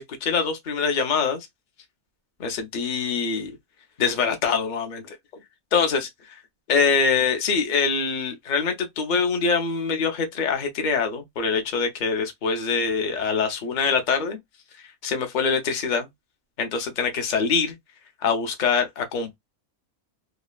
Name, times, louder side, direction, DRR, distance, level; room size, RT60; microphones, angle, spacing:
voice 1, 0.0-1.5 2.4-3.5 4.0-5.2 5.7-6.3 6.7-14.4 15.0-16.1 16.6-17.7 18.2-19.4, left 5 dB, 40° left, 0.7 m, -24 dB
3.0 x 2.1 x 2.2 m
omnidirectional pair, 1.6 m